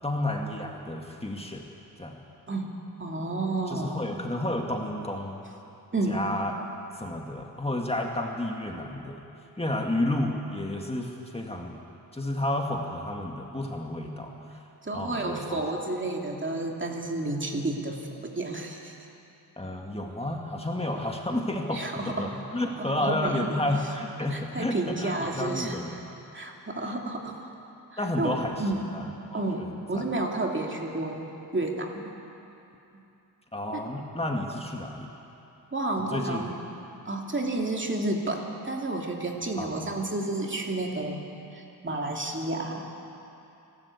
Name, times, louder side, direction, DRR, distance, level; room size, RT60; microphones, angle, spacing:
voice 1, 0.0-1.7 2.0-2.2 3.7-5.4 6.1-6.6 6.9-9.2 9.6-11.7 12.1-14.6 14.9-15.6 19.6-25.9 28.0-29.4 29.9-30.0 33.5-35.1 36.1-36.4 39.6-39.9, left 1 dB, 15° left, 1 dB, 1.9 m, -31 dB
voice 2, 3.0-4.0 5.9-6.2 14.8-19.0 21.7-22.4 22.8-23.6 24.3-25.8 26.3-27.5 27.9-28.8 29.3-31.2 31.5-32.1 33.7-33.8 35.7-36.5 37.0-41.3 41.5-42.9, right 2 dB, 30° right, 0 dB, 2.6 m, -31 dB
27.0 x 13.0 x 8.3 m, 2.8 s
wide cardioid pair, 90°, 37 cm